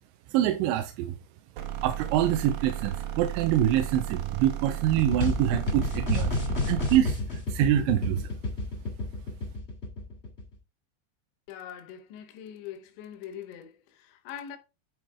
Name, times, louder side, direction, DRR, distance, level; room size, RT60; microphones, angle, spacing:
voice 1, 0.3-1.2 1.8-6.3 6.7-7.2 7.5-8.2, right 11 dB, 90° right, 2.9 m, -25 dB
sound 1, 1.6-7.1, right 11 dB, 70° right, 2.2 m, -35 dB
sound 2, 4.9-10.5, left 3 dB, 45° left, 0.8 m, -30 dB
voice 2, 11.5-14.6, left 9 dB, 85° left, 3.3 m, -42 dB
9.5 x 4.3 x 3.4 m
omnidirectional pair, 5.1 m